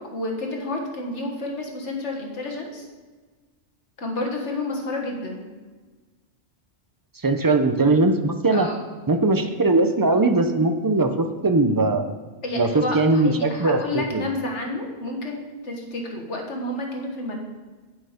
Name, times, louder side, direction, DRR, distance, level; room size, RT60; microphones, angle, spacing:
voice 1, 0.1-2.9 4.0-5.4 8.5-8.8 12.4-17.4, left 2 dB, 80° left, 1 dB, 1.8 m, -30 dB
voice 2, 7.2-8.7 9.1-12.0 12.6-14.3, right 2 dB, 25° right, 7 dB, 0.5 m, -20 dB
8.9 x 7.9 x 5.1 m, 1.3 s
omnidirectional pair, 1.2 m